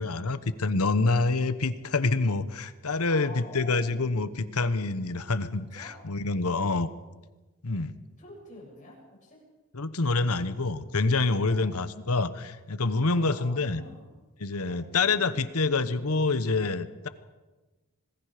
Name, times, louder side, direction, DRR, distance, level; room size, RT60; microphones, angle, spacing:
voice 1, 0.0-6.9 7.6-7.9 9.7-13.8 14.4-17.1, left 3 dB, 75° left, 13 dB, 1.1 m, -27 dB
voice 2, 3.1-4.2 5.7-6.0 6.4-6.8 7.6-7.8 8.2-9.5 10.3-10.6 11.5-11.9 13.1-14.2 14.5-15.6, left 1 dB, 35° left, -2 dB, 7.4 m, -48 dB
26.5 x 19.5 x 5.1 m, 1.2 s
head